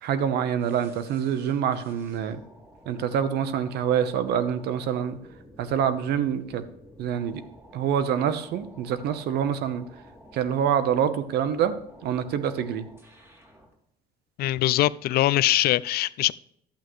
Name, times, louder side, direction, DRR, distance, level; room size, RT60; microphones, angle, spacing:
voice 1, 0.0-2.4 2.8-5.2 5.6-6.6 7.0-7.4 7.7-9.8 10.3-12.9, right 8 dB, 75° right, 1.0 m, -26 dB
sound 1, 0.6-13.7, equal, 15° right, 3.0 m, -51 dB
voice 2, 14.4-16.3, left 15 dB, 65° left, 0.4 m, -22 dB
11.5 x 8.4 x 3.2 m
cardioid pair, 110°, 17 cm